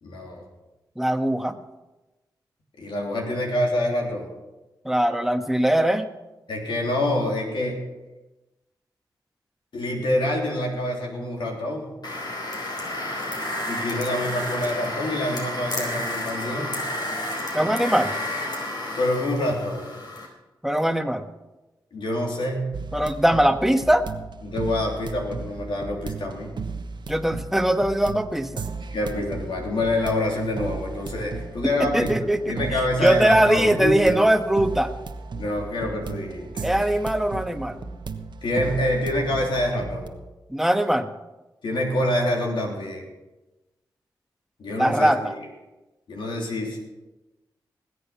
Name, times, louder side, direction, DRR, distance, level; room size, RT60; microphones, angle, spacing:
voice 1, 0.0-0.4 2.8-4.3 6.5-7.8 9.7-12.0 13.7-16.8 19.0-20.0 21.9-22.7 24.4-26.5 28.8-32.1 32.4-34.0 35.4-36.7 38.4-40.2 41.6-43.1 44.6-45.4 46.1-46.8, left 1 dB, 75° left, 0 dB, 3.3 m, -26 dB
voice 2, 1.0-1.6 4.8-6.1 17.5-18.1 20.6-21.3 22.9-24.1 27.1-28.6 31.8-32.6 33.0-34.9 36.6-37.8 40.5-41.1 44.8-45.3, right 1 dB, 5° right, 7 dB, 1.3 m, -21 dB
sound 1, 12.0-20.3, left 1 dB, 55° left, 4.3 m, -31 dB
sound 2, 22.7-40.1, right 4 dB, 65° right, 1.2 m, -35 dB
19.5 x 8.1 x 5.8 m, 1.1 s
cardioid pair, 45°, 8 cm